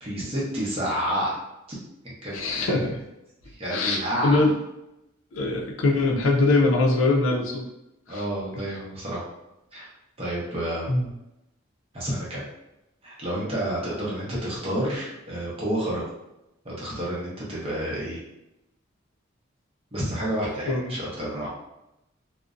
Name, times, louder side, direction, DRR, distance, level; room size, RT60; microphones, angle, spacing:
voice 1, 0.0-1.4 1.7-1.8 2.0-2.7 3.6-4.4 8.1-9.2 9.7-9.9 10.2-10.9 11.9-12.5 13.0-16.0 16.6-18.2 19.9-21.5, right 1 dB, 30° right, -6 dB, 0.7 m, -29 dB
voice 2, 2.3-2.8 3.7-4.5 5.3-7.6 8.1-8.2 10.9-11.1 20.7-20.9, left 2 dB, 80° left, 0 dB, 0.4 m, -22 dB
2.5 x 2.0 x 2.4 m, 0.90 s
head